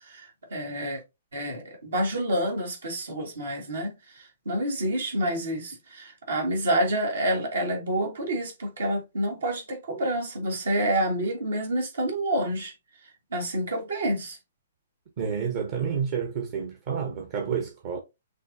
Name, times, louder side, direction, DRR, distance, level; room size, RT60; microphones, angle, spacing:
voice 1, 0.1-1.0 1.3-3.9 4.5-12.7 13.3-14.4, right 1 dB, 70° right, 1.9 m, -28 dB
voice 2, 15.2-18.0, right 7 dB, 45° right, 1.1 m, -29 dB
6.2 x 3.1 x 2.7 m
figure-of-eight pair, 120°, 0 cm